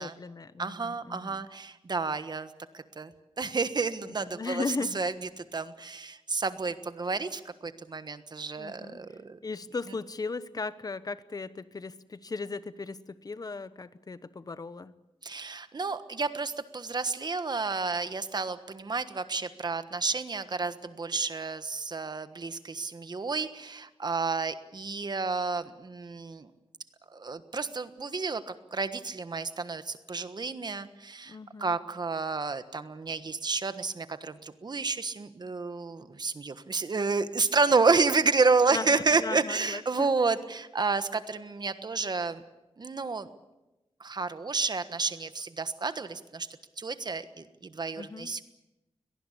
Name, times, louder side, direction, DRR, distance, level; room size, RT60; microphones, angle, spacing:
voice 1, 0.0-1.5 4.1-5.0 8.6-9.0 9.4-14.9 31.3-31.8 38.7-40.1 48.0-48.3, left 4 dB, 35° left, 15 dB, 1.0 m, -37 dB
voice 2, 0.6-2.5 2.7-3.1 3.4-4.6 4.9-9.4 15.2-26.5 27.1-42.4 42.8-43.3 44.0-46.5 46.8-48.4, right 4 dB, 40° right, 11 dB, 1.3 m, -30 dB
23.5 x 18.5 x 8.5 m, 0.99 s
wide cardioid pair, 145°, 11 cm